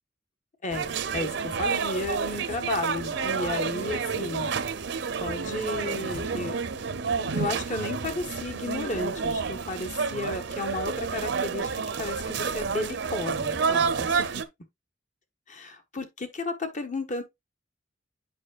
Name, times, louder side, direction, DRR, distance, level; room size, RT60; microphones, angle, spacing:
voice 1, 0.6-4.5 5.2-11.7 12.0-14.4 15.5-17.2, left 2 dB, 40° left, 1.3 m, -33 dB
sound 1, 0.7-14.4, right 5 dB, 70° right, 0.7 m, -29 dB
8.4 x 5.6 x 2.4 m
head